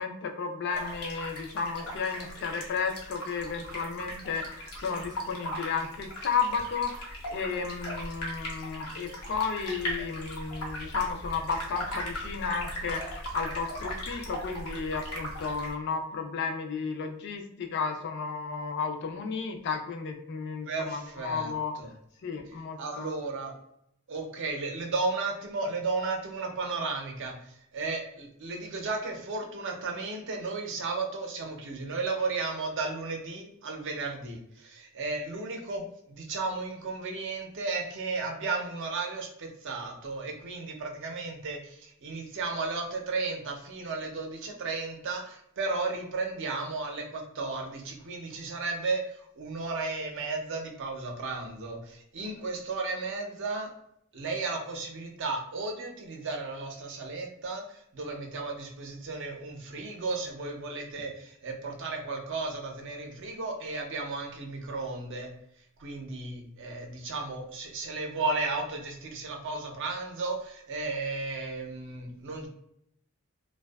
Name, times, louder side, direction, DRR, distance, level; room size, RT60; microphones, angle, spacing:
voice 1, 0.0-21.7 22.2-23.1, left 5 dB, 50° left, 4 dB, 0.4 m, -33 dB
sound 1, 0.7-15.7, equal, 90° left, 0.9 m, -38 dB
voice 2, 20.7-21.5 21.8-21.9 22.5-23.5 24.1-53.7 54.1-65.3 65.8-72.5, right 3 dB, 60° right, 2 dB, 0.5 m, -34 dB
2.6 x 2.2 x 2.2 m, 0.75 s
head